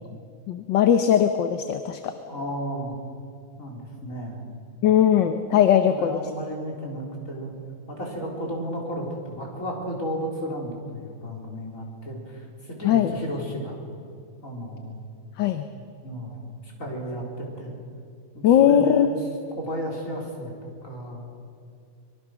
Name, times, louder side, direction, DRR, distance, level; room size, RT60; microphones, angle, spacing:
voice 1, 0.5-2.1 4.8-6.2 12.8-13.1 15.4-15.6 18.4-19.1, left 9 dB, 65° left, 8 dB, 1.5 m, -19 dB
voice 2, 2.3-3.0 3.6-4.4 5.9-7.5 7.9-13.8 14.4-15.0 15.7-17.7 18.3-19.1 19.6-21.2, equal, 35° left, -1 dB, 4.6 m, -33 dB
25.0 x 22.5 x 6.3 m, 2.3 s
omnidirectional pair, 2.4 m